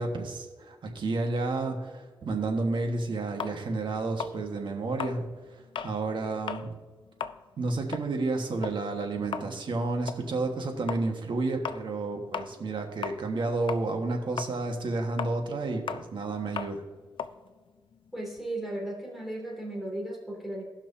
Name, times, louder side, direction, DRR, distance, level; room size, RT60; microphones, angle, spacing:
voice 1, 0.0-6.7 7.6-16.8, right 3 dB, 70° right, 3 dB, 1.5 m, -31 dB
sound 1, 3.4-6.0 6.4-6.7 7.0-13.4 13.7-18.5, left 7 dB, 75° left, 0.4 m, -38 dB
voice 2, 18.1-20.6, right 1 dB, 5° right, -2 dB, 2.7 m, -35 dB
17.5 x 6.0 x 2.8 m, 1.4 s
cardioid pair, 75°, 9 cm